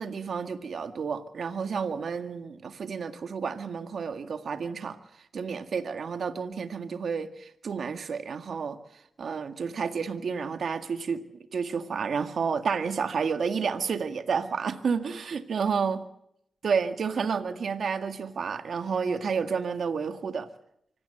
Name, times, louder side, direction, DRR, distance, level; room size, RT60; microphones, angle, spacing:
voice 1, 0.0-5.0 5.3-8.8 9.2-11.2 11.5-16.0 16.6-20.5, right 6 dB, 75° right, 1.9 m, -30 dB
25.0 x 17.0 x 7.9 m
cardioid pair, 50°, 0 cm